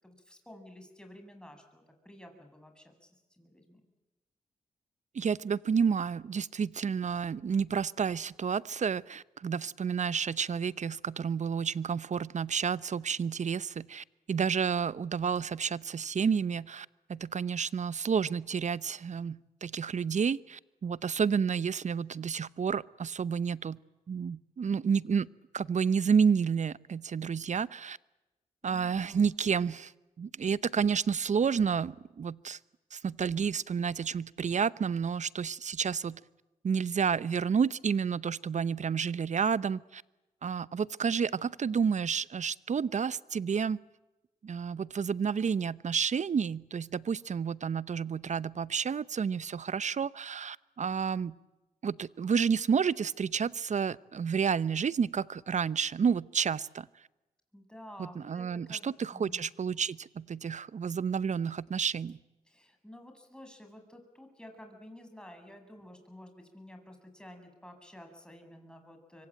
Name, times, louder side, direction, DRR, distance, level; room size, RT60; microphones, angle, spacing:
voice 1, 0.0-3.8 28.6-29.2 57.5-59.5 62.4-69.3, left 1 dB, 5° left, 5 dB, 8.0 m, -51 dB
voice 2, 5.1-23.8 24.1-25.3 25.5-28.0 28.6-29.9 30.2-32.6 32.9-36.2 36.6-40.0 40.4-43.8 44.4-51.3 51.8-56.9 58.0-62.2, right 6 dB, 55° right, 19 dB, 0.8 m, -30 dB
26.0 x 24.0 x 9.0 m, 1.0 s
supercardioid pair, 45°, 15 cm